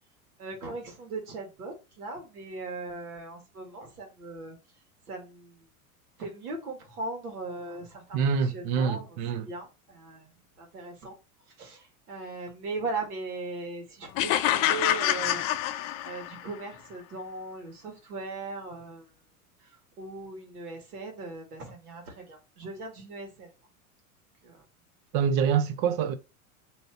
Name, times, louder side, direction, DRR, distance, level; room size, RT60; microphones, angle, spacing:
voice 1, 0.4-4.6 5.1-5.7 6.2-10.3 10.6-11.2 11.6-15.5 16.0-19.0 19.6-23.5 24.4-24.6, right 3 dB, 80° right, 1.7 m, -39 dB
voice 2, 8.1-9.5 25.1-26.2, right 7 dB, 50° right, 0.7 m, -26 dB
sound 1, 14.2-16.5, left 13 dB, 45° left, 0.5 m, -26 dB
3.1 x 2.8 x 4.5 m
hypercardioid pair, 95°, 44 cm